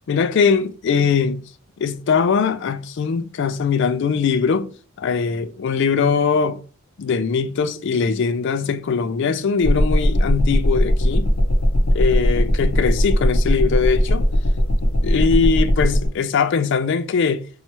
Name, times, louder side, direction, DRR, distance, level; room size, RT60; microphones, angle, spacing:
voice 1, 0.1-1.4 1.8-4.7 5.0-6.6 7.0-11.3 11.9-14.3 15.0-17.4, left 5 dB, 55° left, 0.3 m, -21 dB
sound 1, 9.6-16.1, equal, 75° left, 0.7 m, -18 dB
4.2 x 2.3 x 2.9 m
head